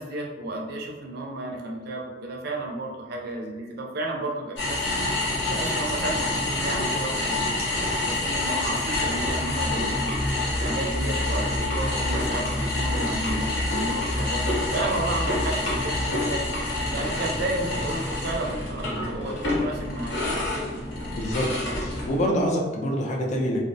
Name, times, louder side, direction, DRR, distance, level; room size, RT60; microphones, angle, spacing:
voice 1, 0.0-4.9 5.5-10.2 10.5-14.4 14.7-16.6 16.9-20.2, right 2 dB, 55° right, 0 dB, 0.4 m, -32 dB
sound 1, 4.6-22.3, left 2 dB, 65° left, 0.7 m, -27 dB
voice 2, 21.2-23.6, equal, 40° left, -1 dB, 0.3 m, -26 dB
2.5 x 2.0 x 2.6 m, 1.2 s
head